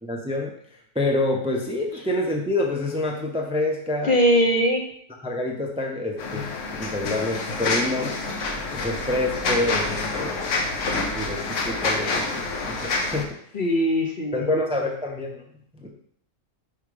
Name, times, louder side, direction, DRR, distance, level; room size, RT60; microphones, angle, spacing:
voice 1, 0.0-4.2 5.2-8.2 8.7-10.4 11.1-13.4 14.3-15.4 15.7-15.9, left 2 dB, 5° right, 1 dB, 0.6 m, -27 dB
voice 2, 4.0-4.8 13.5-14.5, equal, 45° left, 2 dB, 0.9 m, -20 dB
sound 1, 6.2-13.2, left 3 dB, 70° left, 1.2 m, -27 dB
5.7 x 4.7 x 4.9 m, 0.65 s
omnidirectional pair, 1.4 m